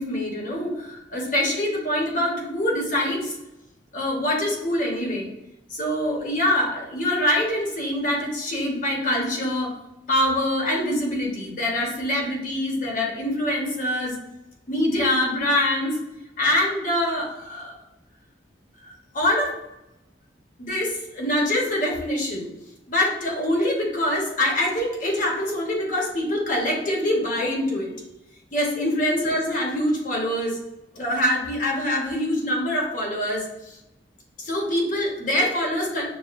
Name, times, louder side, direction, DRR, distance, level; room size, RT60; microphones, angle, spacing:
voice 1, 0.0-3.3 3.9-5.3 5.7-9.8 10.1-14.2 14.7-16.0 16.4-17.7 18.8-19.6 20.6-22.5 22.9-28.0 28.5-30.6 30.9-33.8 34.4-36.0, left 1 dB, 45° left, -1 dB, 0.9 m, -24 dB
6.3 x 2.1 x 2.4 m, 0.89 s
head